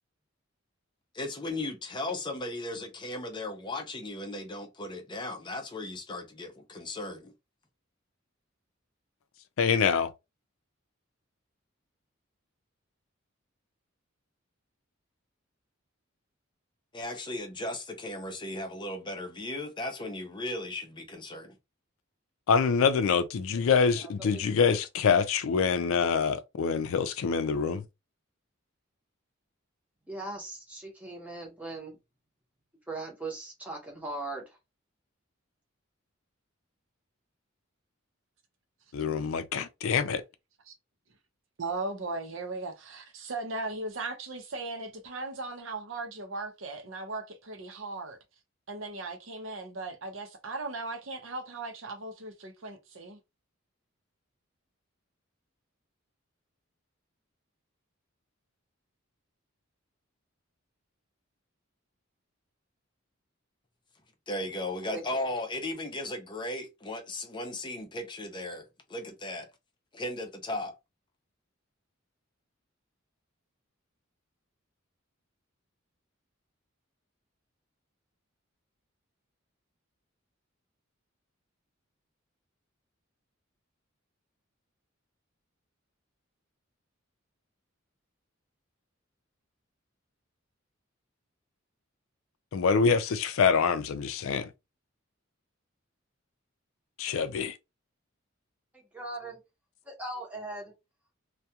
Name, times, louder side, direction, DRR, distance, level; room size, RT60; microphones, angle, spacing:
voice 1, 1.1-7.3 16.9-21.5 64.3-69.5 69.9-70.7, left 1 dB, 25° left, 0.5 m, -36 dB
voice 2, 9.6-10.1 22.5-27.8 38.9-40.2 92.5-94.5 97.0-97.6, left 6 dB, 75° left, 0.4 m, -25 dB
voice 3, 23.9-24.3 30.1-32.0 32.9-34.6 64.9-65.0 98.7-99.4 99.9-100.7, right 2 dB, 5° right, 0.8 m, -39 dB
voice 4, 41.6-48.2 48.7-53.2, right 3 dB, 65° right, 0.7 m, -37 dB
2.3 x 2.2 x 2.8 m
head